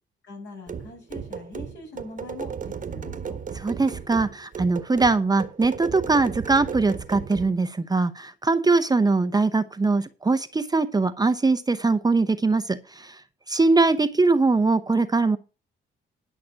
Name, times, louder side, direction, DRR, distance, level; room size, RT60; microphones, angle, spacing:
voice 1, 0.2-3.4, left 3 dB, 65° left, 0 dB, 7.3 m, -42 dB
sound 1, 0.7-7.5, right 6 dB, 40° right, 1.4 m, -35 dB
voice 2, 3.5-13.2 13.5-15.4, right 3 dB, 20° right, 10 dB, 0.9 m, -22 dB
11.5 x 6.0 x 6.3 m, 0.33 s
cardioid pair, 90°, 20 cm